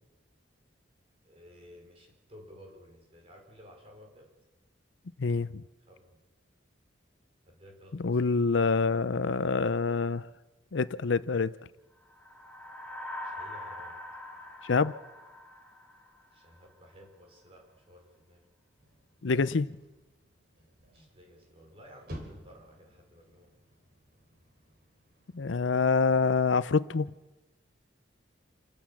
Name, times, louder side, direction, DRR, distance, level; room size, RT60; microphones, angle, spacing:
voice 1, 1.2-4.3 5.9-6.2 7.5-8.2 13.2-14.0 16.3-18.4 20.9-23.5, equal, 30° right, 5.1 m, -54 dB
voice 2, 5.2-5.6 8.0-10.3 10.7-11.6 14.6-14.9 19.2-19.7 25.3-27.1, left 4 dB, 70° left, 0.6 m, -26 dB
sound 1, 12.1-16.6, left 1 dB, 5° left, 2.8 m, -43 dB
sound 2, 18.8-27.1, equal, 50° right, 3.9 m, -52 dB
28.0 x 13.5 x 7.2 m
head